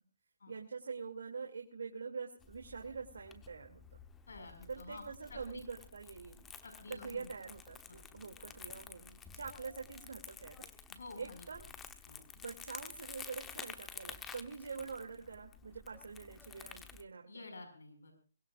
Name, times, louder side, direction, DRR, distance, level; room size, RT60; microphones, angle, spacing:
voice 1, 0.5-4.0 4.7-6.4 6.9-10.7 11.2-11.6 12.3-17.4, right 5 dB, 75° right, 2 dB, 2.6 m, -45 dB
Crumpling crinkling, 2.4-17.0, left 6 dB, 10° left, 1.0 m, -52 dB
voice 2, 4.3-5.0 5.3-5.6 6.6-7.3 7.9-8.5 10.9-11.5 12.1-12.3 17.3-18.1, left 3 dB, 80° left, 5 dB, 5.9 m, -51 dB
23.5 x 21.0 x 2.5 m, 0.36 s
hypercardioid pair, 155°, 0 cm